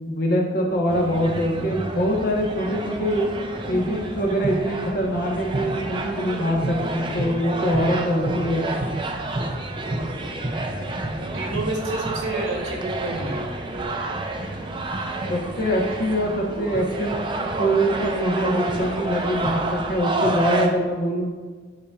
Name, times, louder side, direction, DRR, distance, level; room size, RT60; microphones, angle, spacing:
voice 1, 0.0-3.3 3.7-8.9 15.3-17.3 17.6-21.3, equal, 55° left, 0 dB, 1.1 m, -24 dB
sound 1, 0.9-20.7, right 2 dB, 25° right, 0.5 m, -29 dB
voice 2, 11.2-14.2, right 2 dB, 85° right, -1 dB, 1.4 m, -30 dB
9.8 x 4.1 x 2.4 m, 1.4 s
head